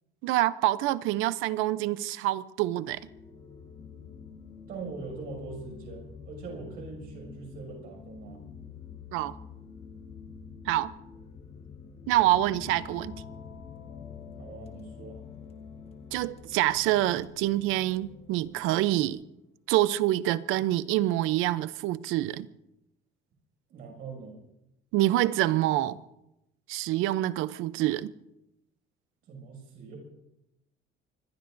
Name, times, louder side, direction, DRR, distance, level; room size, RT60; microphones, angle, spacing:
voice 1, 0.2-3.0 9.1-9.3 10.7-10.9 12.1-13.2 16.1-19.2 19.7-22.5 24.9-26.0 26.7-28.1, right 15 dB, 75° right, 0.6 m, -26 dB
sound 1, 2.9-19.1, left 6 dB, 30° left, 1.4 m, -47 dB
voice 2, 4.7-8.4 14.4-15.2 23.7-24.4 29.3-30.0, right 4 dB, 45° right, 6.3 m, -42 dB
sound 2, 12.4-18.9, left 7 dB, 75° left, 4.8 m, -55 dB
25.0 x 21.5 x 2.6 m
cardioid pair, 180°, 21 cm